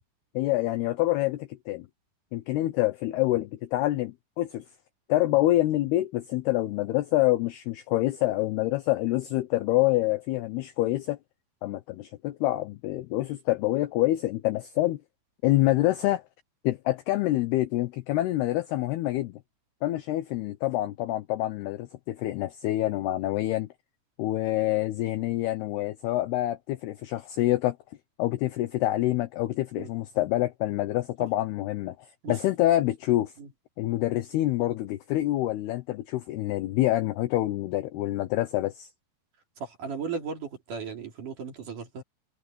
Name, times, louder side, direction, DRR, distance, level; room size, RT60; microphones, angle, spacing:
voice 1, 0.3-1.9 2.3-4.6 5.1-11.2 11.6-15.0 15.4-16.2 16.6-19.4 19.8-23.7 24.2-27.8 28.2-32.0 32.3-33.3 33.8-38.9, left 16 dB, 80° left, 2.3 m, -26 dB
voice 2, 39.6-42.0, right 5 dB, 45° right, 4.3 m, -36 dB
omnidirectional pair, 5.5 m